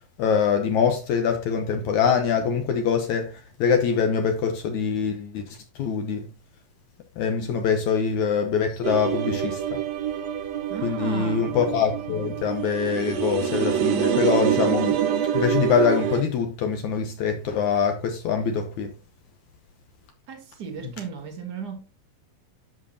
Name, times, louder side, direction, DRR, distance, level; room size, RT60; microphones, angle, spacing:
voice 1, 0.2-6.3 7.2-9.8 10.8-15.0 15.3-18.9, left 6 dB, 70° left, 1.9 m, -24 dB
sound 1, 8.8-16.2, right 9 dB, 80° right, 1.5 m, -26 dB
voice 2, 10.7-11.6 20.3-21.9, right 7 dB, 60° right, 1.0 m, -36 dB
10.5 x 6.6 x 2.8 m
omnidirectional pair, 4.1 m